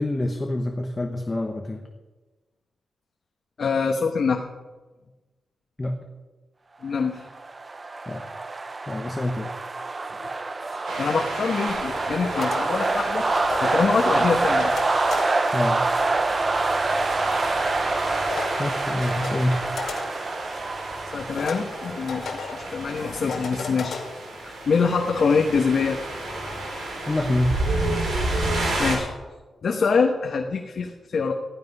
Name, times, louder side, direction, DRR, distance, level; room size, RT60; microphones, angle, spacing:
voice 1, 0.0-1.9 5.8-6.0 8.1-8.2 8.9-9.5 13.0-13.2 15.5-15.8 18.6-19.6 24.4-24.6 27.1-27.6, left 1 dB, 15° left, 3 dB, 1.0 m, -26 dB
voice 2, 3.6-4.4 6.8-7.2 10.2-10.3 10.7-13.3 13.6-14.8 21.1-24.2 24.7-26.0 28.8-29.1 29.6-31.3, left 5 dB, 50° left, 2 dB, 1.1 m, -24 dB
sound 1, 7.2-23.8, right 3 dB, 25° right, 0.5 m, -27 dB
sound 2, 10.8-29.0, right 2 dB, 80° right, 5.6 m, -32 dB
sound 3, 11.7-26.7, left 4 dB, 70° left, 2.3 m, -37 dB
15.0 x 12.0 x 5.4 m, 1.2 s
wide cardioid pair, 150°, 0 cm